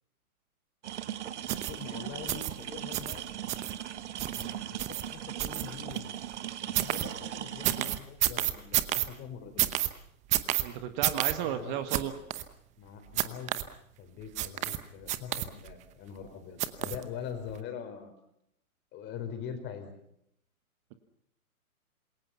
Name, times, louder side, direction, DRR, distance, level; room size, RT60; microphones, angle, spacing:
sound 1, 0.8-8.0, right 11 dB, 50° right, 1.6 m, -39 dB
voice 1, 1.4-3.2 4.2-6.1 6.6-9.8 11.4-11.8 12.8-13.7 14.0-18.1 18.9-19.9, left 7 dB, 25° left, 6 dB, 4.7 m, -43 dB
sound 2, 1.5-1.7 2.3-2.5 2.9-3.1 3.5-3.7 4.2-4.4 4.8-5.0 5.4-6.0 6.7-7.0 7.6-9.1 9.6-9.9 10.3-10.6 11.0-11.3 11.9-12.0 12.3-12.4 13.2-13.6 14.4-14.8 15.1-15.7 16.6-17.0 17.5-17.6, right 14 dB, 15° right, 0.9 m, -29 dB
voice 2, 10.6-12.1, right 10 dB, 30° right, 9 dB, 1.6 m, -33 dB
27.5 x 21.5 x 5.7 m, 0.74 s
hypercardioid pair, 135°, 44 cm